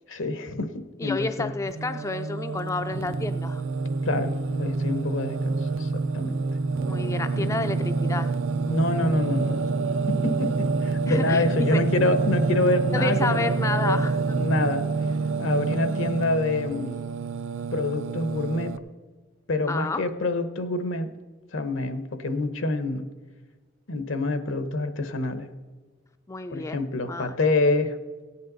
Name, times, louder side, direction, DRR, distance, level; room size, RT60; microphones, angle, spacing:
voice 1, 0.1-1.5 4.0-6.4 7.4-7.5 8.7-9.6 10.1-13.5 13.8-14.0 14.3-14.9 15.4-17.0 17.7-18.7 19.5-21.1 21.5-23.1 23.9-25.5 26.5-28.0, left 2 dB, 80° left, 10 dB, 0.9 m, -26 dB
voice 2, 1.0-3.6 6.9-8.4 11.1-11.8 12.9-14.4 19.7-20.1 26.3-27.4, left 3 dB, 15° left, 9 dB, 0.3 m, -30 dB
Singing, 1.6-18.8, right 4 dB, 80° right, 0.5 m, -27 dB
17.0 x 8.6 x 4.0 m, 1.4 s
head